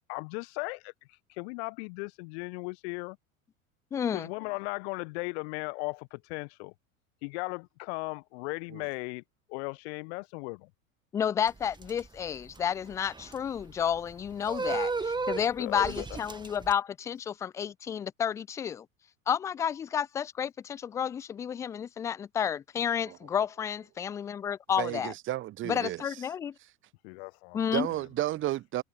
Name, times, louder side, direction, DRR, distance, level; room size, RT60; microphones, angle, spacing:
voice 1, 0.1-0.9 1.3-3.2 4.1-6.7 7.2-9.2 9.5-10.7 14.6-14.8 15.6-16.2 27.0-28.0, left 31 dB, 50° left, 1.6 m, -37 dB
voice 2, 3.9-4.3 11.1-18.9 19.3-25.1 25.6-26.5 27.5-27.9, left 8 dB, 10° left, 0.3 m, -31 dB
sound 1, 11.5-16.7, right 4 dB, 10° right, 2.1 m, -35 dB
voice 3, 24.8-26.2 27.7-28.8, right 15 dB, 30° right, 1.0 m, -32 dB
figure-of-eight pair, 80°, 43 cm